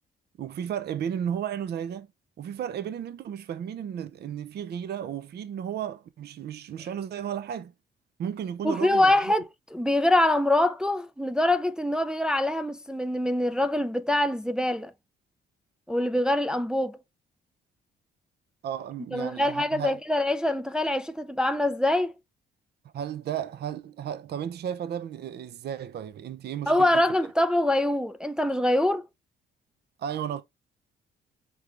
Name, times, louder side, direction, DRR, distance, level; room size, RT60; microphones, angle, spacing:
voice 1, 0.4-2.1 2.4-7.7 8.2-9.2 18.6-20.0 22.9-26.9 30.0-30.4, right 9 dB, 55° right, 0.5 m, -34 dB
voice 2, 8.6-9.5 9.7-14.9 15.9-17.0 19.1-22.1 26.7-29.0, left 1 dB, 5° right, 0.3 m, -24 dB
4.6 x 3.3 x 2.4 m
cardioid pair, 90°, 20 cm